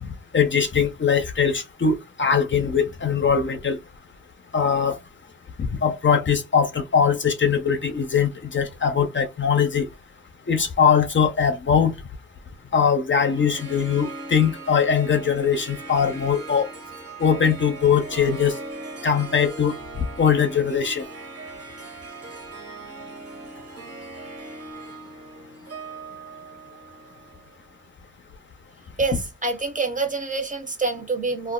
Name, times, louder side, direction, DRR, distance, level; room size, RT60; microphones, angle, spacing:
voice 1, 0.0-3.8 4.5-5.0 5.6-9.9 10.5-11.9 12.7-16.7 17.2-18.6 19.0-21.1, left 7 dB, 40° left, 0.6 m, -21 dB
Harp, 13.2-27.7, right 2 dB, 55° right, 1.1 m, -39 dB
voice 2, 29.0-31.5, right 3 dB, 25° right, 0.8 m, -26 dB
2.4 x 2.0 x 3.7 m
cardioid pair, 80°, 30 cm